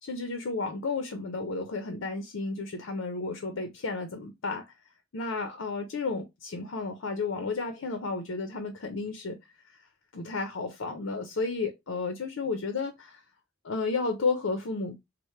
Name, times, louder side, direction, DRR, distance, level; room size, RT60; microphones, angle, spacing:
voice 1, 0.0-4.6 5.1-9.4 10.1-13.2 13.6-15.0, left 3 dB, 85° left, 0.6 m, -32 dB
4.2 x 2.1 x 3.1 m
head